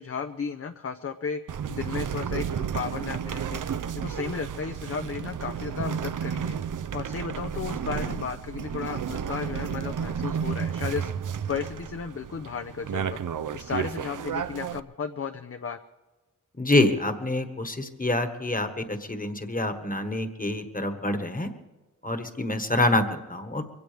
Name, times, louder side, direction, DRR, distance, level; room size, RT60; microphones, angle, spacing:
voice 1, 0.0-1.4 1.7-3.6 3.9-6.6 6.9-11.1 11.5-13.2 13.5-15.8, left 6 dB, 45° left, 8 dB, 0.6 m, -34 dB
sound 1, 1.5-14.8, right 8 dB, 70° right, 0.6 m, -32 dB
voice 2, 16.6-21.5 22.0-23.7, left 2 dB, 25° left, 8 dB, 1.4 m, -26 dB
23.0 x 16.5 x 3.4 m, 1.2 s
wide cardioid pair, 90°, 33 cm